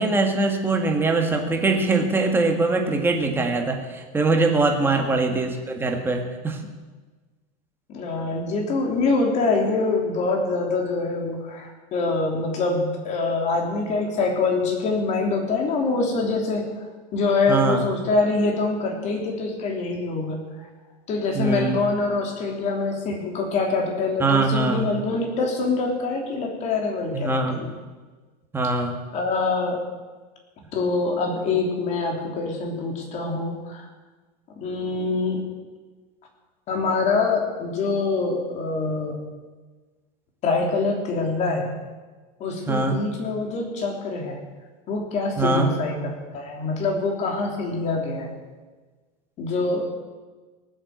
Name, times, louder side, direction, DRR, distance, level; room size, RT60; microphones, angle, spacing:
voice 1, 0.0-6.6 17.5-17.8 21.3-21.8 24.2-24.9 27.1-27.6 28.5-28.9 42.7-43.0 45.4-45.7, right 3 dB, 10° right, 3 dB, 1.7 m, -22 dB
voice 2, 4.8-5.2 7.9-16.6 17.1-20.4 21.1-27.7 29.1-29.8 30.7-33.9 34.6-35.4 36.7-39.2 40.4-41.7 42.4-44.4 44.9-48.3 49.4-49.8, left 3 dB, 35° left, 1 dB, 3.3 m, -25 dB
18.5 x 8.0 x 7.8 m, 1.3 s
supercardioid pair, 155°, 21 cm